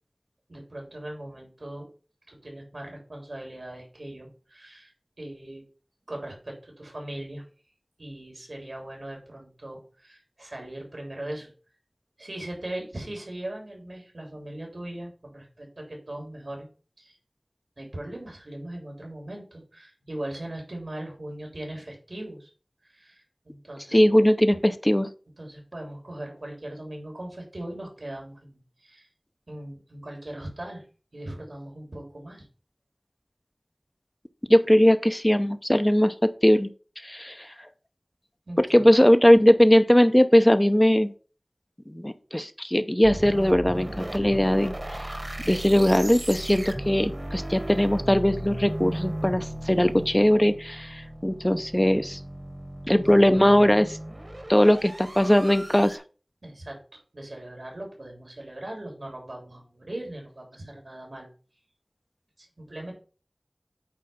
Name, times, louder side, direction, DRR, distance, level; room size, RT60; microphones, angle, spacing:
voice 1, 0.5-1.9 2.3-4.9 5.2-5.6 6.1-7.4 8.0-11.5 12.2-16.7 17.0-17.2 17.8-22.5 22.8-24.0 25.4-29.1 29.5-30.8 31.1-32.4 38.5-39.1 53.0-53.6 56.4-56.8 57.1-61.3 62.4-62.9, right 1 dB, 85° right, 1 dB, 3.1 m, -39 dB
voice 2, 23.9-25.1 34.5-36.7 37.0-37.5 38.7-41.1 41.9-45.0 45.5-52.2 52.9-53.9 54.5-56.0, equal, 20° left, 9 dB, 0.7 m, -20 dB
sound 1, 43.0-56.0, right 1 dB, 45° right, 1.3 m, -36 dB
8.7 x 3.3 x 5.5 m, 0.37 s
wide cardioid pair, 40°, 0 cm